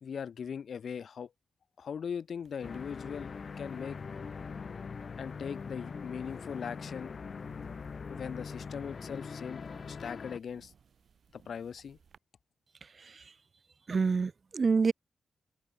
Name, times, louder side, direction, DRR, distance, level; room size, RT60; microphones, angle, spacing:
voice 1, 0.0-1.3 1.8-4.0 5.2-7.1 8.1-10.7 11.3-12.0, left 7 dB, 65° left, 0.6 m, -40 dB
sound 1, 2.4-12.2, right 7 dB, 65° right, 6.5 m, -63 dB
sound 2, 2.6-10.4, left 5 dB, 45° left, 1.2 m, -42 dB
voice 2, 13.9-14.9, right 4 dB, 40° right, 0.7 m, -27 dB
open air
wide cardioid pair, 150°, 0 cm